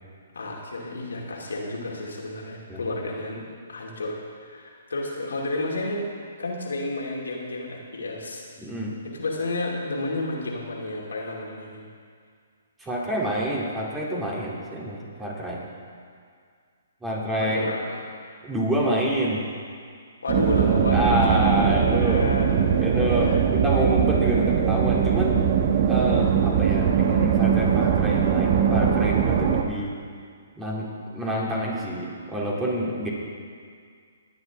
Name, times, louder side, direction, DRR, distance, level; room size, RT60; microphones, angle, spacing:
voice 1, 0.3-3.4 3.7-6.1 6.4-8.4 9.0-11.8 17.4-18.0 20.2-23.4, left 2 dB, 75° left, -2 dB, 2.4 m, -31 dB
voice 2, 8.6-8.9 12.8-15.6 17.0-17.7 18.4-19.5 20.9-22.2 22.8-25.4 25.9-30.0 30.6-30.9 31.1-33.1, equal, 10° right, -5 dB, 2.8 m, -27 dB
sound 1, 20.3-29.6, right 7 dB, 45° right, 1.1 m, -21 dB
19.0 x 9.9 x 3.5 m, 2.1 s
figure-of-eight pair, 130°, 0 cm